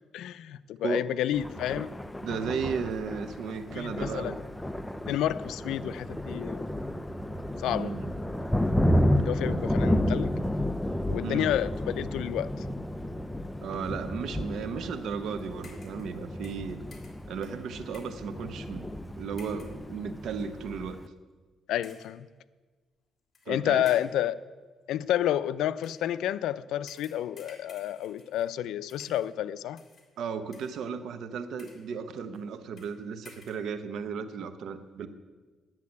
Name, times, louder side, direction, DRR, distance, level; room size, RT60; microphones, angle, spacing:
voice 1, 0.1-1.9 3.7-4.3 5.0-6.7 7.6-8.0 9.2-10.4 11.1-12.5 21.7-22.3 23.5-24.4 24.9-29.8, left 12 dB, 85° left, 0.4 m, -30 dB
Thunder, 1.3-21.1, left 1 dB, 5° left, 0.5 m, -32 dB
voice 2, 2.2-4.4 7.6-8.1 9.5-9.6 11.2-11.5 13.6-16.8 17.3-18.9 19.2-21.0 23.5-23.9 30.2-35.1, right 6 dB, 75° right, 0.9 m, -35 dB
sound 1, 15.6-16.2 16.4-18.3 19.4-19.8 20.5-20.7 21.8-22.2 23.3-23.5 23.9-24.3 25.8-26.1 26.9-28.6 28.9-29.4 29.8-30.1 30.5-31.0 31.4-31.9 32.3-32.4 32.8-33.0 33.2-33.7, left 4 dB, 35° left, 3.0 m, -54 dB
10.5 x 7.5 x 9.5 m
cardioid pair, 90°, 0 cm